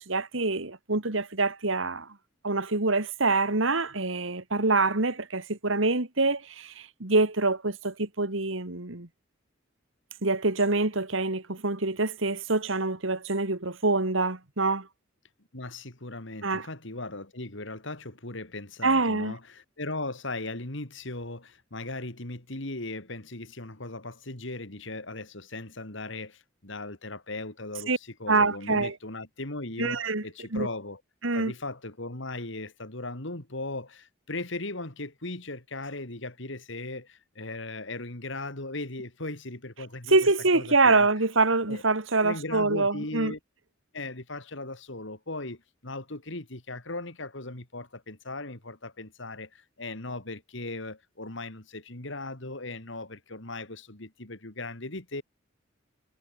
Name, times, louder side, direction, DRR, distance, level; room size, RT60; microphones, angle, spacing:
voice 1, 0.0-2.1 2.4-9.1 10.2-14.9 16.4-16.7 18.8-19.4 27.9-28.0 28.3-29.0 29.8-30.2 30.5-30.7 31.2-31.5 40.1-43.3, right 3 dB, 70° right, 2.3 m, -25 dB
voice 2, 15.5-31.0 31.3-40.1 40.5-41.1 41.7-41.8 42.2-43.4 43.9-55.2, left 2 dB, 65° left, 3.2 m, -38 dB
head